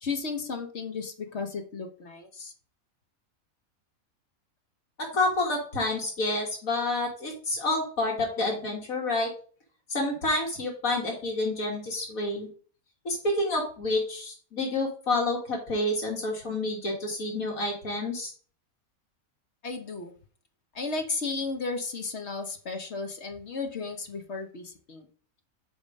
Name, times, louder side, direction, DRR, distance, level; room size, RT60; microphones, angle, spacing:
voice 1, 0.0-2.5 19.6-20.1 20.7-25.0, left 4 dB, 55° left, 6 dB, 1.3 m, -34 dB
voice 2, 5.1-9.3 9.9-12.5 13.1-18.3, left 2 dB, 80° left, 0 dB, 2.1 m, -29 dB
8.5 x 3.8 x 5.3 m, 0.43 s
omnidirectional pair, 1.4 m